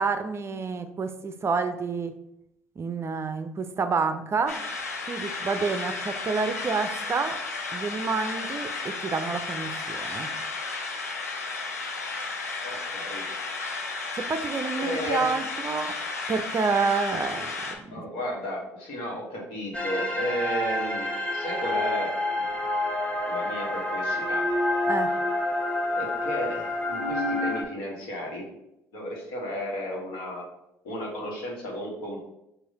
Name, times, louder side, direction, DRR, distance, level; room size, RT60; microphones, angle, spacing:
voice 1, 0.0-2.1 2.8-4.6 5.1-7.4 7.7-10.3 14.1-15.9 16.3-17.5 17.8-18.0 24.9-25.1, right 4 dB, 30° right, 9 dB, 0.5 m, -28 dB
sound 1, 4.5-17.7, left 3 dB, 90° left, 0.5 m, -33 dB
voice 2, 12.6-13.2 14.7-15.3 17.9-22.5 23.3-24.5 25.9-28.5 28.9-30.4 30.8-32.3, left 1 dB, 65° left, -1 dB, 1.4 m, -34 dB
sound 2, 19.7-27.6, left 1 dB, 15° left, 1.1 m, -28 dB
4.8 x 2.5 x 4.1 m, 0.84 s
hypercardioid pair, 55°, 8 cm